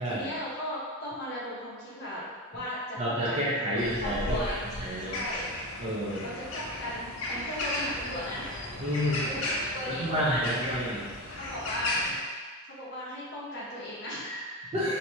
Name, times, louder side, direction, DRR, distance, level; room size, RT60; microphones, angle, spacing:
voice 1, 0.0-4.6 5.1-5.5 6.2-8.5 9.2-10.8 11.4-12.0 12.6-14.7, left 1 dB, 50° left, -8 dB, 1.2 m, -37 dB
voice 2, 3.0-4.5 4.8-5.2 5.8-6.3 8.8-9.3 9.9-11.0 14.7-15.0, equal, 30° right, -7 dB, 0.7 m, -29 dB
sound 1, 3.8-12.2, left 1 dB, 70° left, 0.6 m, -35 dB
4.5 x 2.9 x 2.8 m, 1.5 s
head